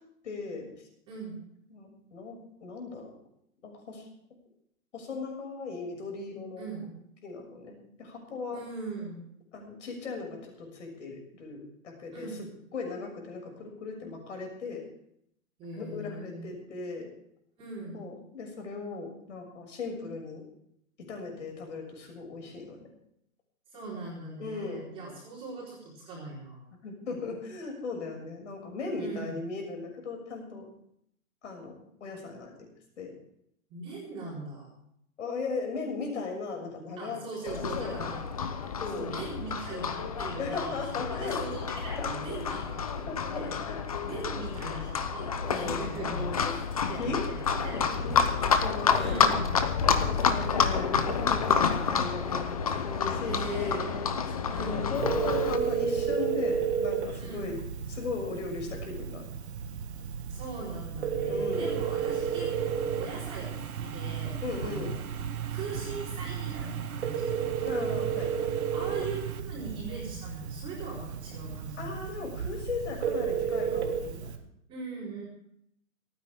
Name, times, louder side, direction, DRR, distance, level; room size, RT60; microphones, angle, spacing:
voice 1, 0.2-0.7 1.7-3.1 3.6-4.0 4.9-6.7 7.2-8.6 9.5-12.5 12.7-14.8 15.7-17.1 17.9-20.4 21.0-22.9 24.4-24.9 26.8-30.6 31.4-32.5 33.0-33.1 35.2-37.9 38.8-39.1 40.3-41.4 42.0-42.4 43.0-43.9 45.4-46.6 47.0-47.2 47.7-49.2 50.0-53.8 54.6-57.6 57.9-59.2 61.3-61.7 64.4-64.9 67.6-68.5 71.8-74.3, left 4 dB, 55° left, 2 dB, 6.6 m, -37 dB
voice 2, 1.1-1.4 6.6-6.9 8.5-9.2 12.1-12.4 15.6-16.5 17.6-18.0 23.7-26.7 29.0-29.4 33.7-34.7 37.0-38.2 38.9-43.5 44.0-48.2 48.9-49.5 53.2-54.1 54.5-54.9 57.2-57.5 60.3-64.3 64.6-64.9 65.5-67.3 68.7-71.9 74.7-75.2, right 3 dB, 15° right, -5 dB, 4.2 m, -40 dB
Livestock farm animals working animals, 37.5-55.6, left 6 dB, 25° left, 0.7 m, -29 dB
Telephone, 54.9-74.4, right 7 dB, 50° right, 1.7 m, -33 dB
sound 1, 61.5-69.4, right 9 dB, 85° right, 1.6 m, -38 dB
29.0 x 9.8 x 3.6 m, 0.71 s
hypercardioid pair, 175°, 42 cm